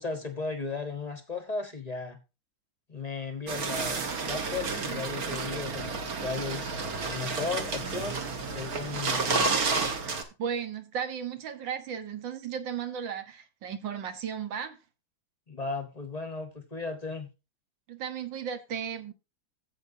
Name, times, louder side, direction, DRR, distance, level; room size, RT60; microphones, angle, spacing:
voice 1, 0.0-2.2 2.9-9.6 15.5-17.3, left 4 dB, 25° left, 0.9 m, -36 dB
sound 1, 3.5-10.2, right 4 dB, 50° right, 1.5 m, -31 dB
voice 2, 10.4-14.8 17.9-19.1, right 7 dB, 65° right, 1.7 m, -35 dB
13.0 x 7.9 x 2.7 m
omnidirectional pair, 2.3 m